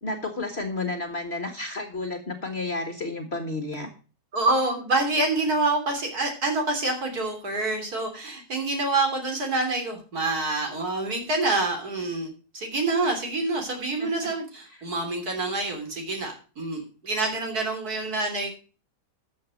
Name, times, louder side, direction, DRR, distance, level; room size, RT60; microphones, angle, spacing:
voice 1, 0.0-3.9 14.0-14.1, left 2 dB, 40° left, 6 dB, 1.6 m, -31 dB
voice 2, 4.3-18.5, right 2 dB, 60° right, 4 dB, 3.8 m, -27 dB
13.0 x 6.8 x 5.2 m, 0.36 s
omnidirectional pair, 1.9 m